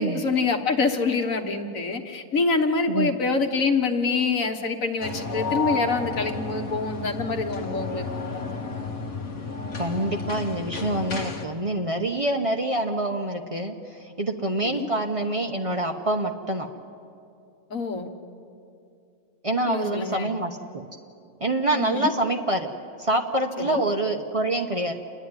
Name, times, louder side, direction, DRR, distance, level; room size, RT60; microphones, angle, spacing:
voice 1, 0.0-8.5 14.6-14.9 17.7-18.1 19.6-20.3 21.7-22.1 23.6-23.8, left 4 dB, 80° left, 4 dB, 1.7 m, -26 dB
sound 1, 5.0-11.5, left 4 dB, 65° left, 1.6 m, -32 dB
voice 2, 9.8-16.7 19.4-20.9 21.4-22.7 23.0-24.9, right 1 dB, 30° right, 3 dB, 0.8 m, -26 dB
28.5 x 11.0 x 9.6 m, 2.6 s
omnidirectional pair, 1.4 m